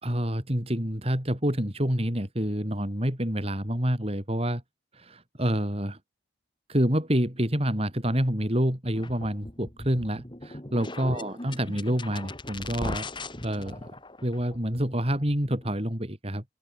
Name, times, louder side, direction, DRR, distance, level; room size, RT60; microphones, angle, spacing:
voice 1, 0.0-4.6 4.9-6.0 6.7-13.1 13.4-13.9 14.2-16.4, equal, 30° right, 4.2 m, -27 dB
sound 1, 9.0-15.7, left 2 dB, 25° left, 3.6 m, -39 dB
open air
head